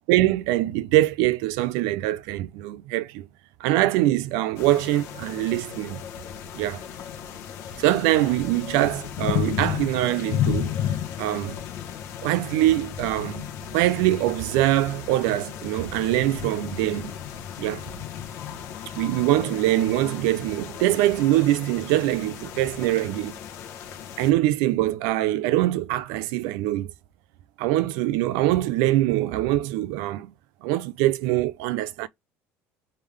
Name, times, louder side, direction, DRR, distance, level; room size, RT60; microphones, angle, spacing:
voice 1, 0.1-3.3 3.6-6.0 6.5-6.8 7.8-10.7 11.2-11.6 12.2-13.5 13.7-17.1 17.6-17.9 18.9-23.3 24.2-26.9 27.6-30.3 30.6-32.1, right 15 dB, 90° right, 0.4 m, -23 dB
sound 1, 4.6-24.3, left 9 dB, 50° left, 0.9 m, -34 dB
3.6 x 3.3 x 3.3 m
cardioid pair, 180°, 6 cm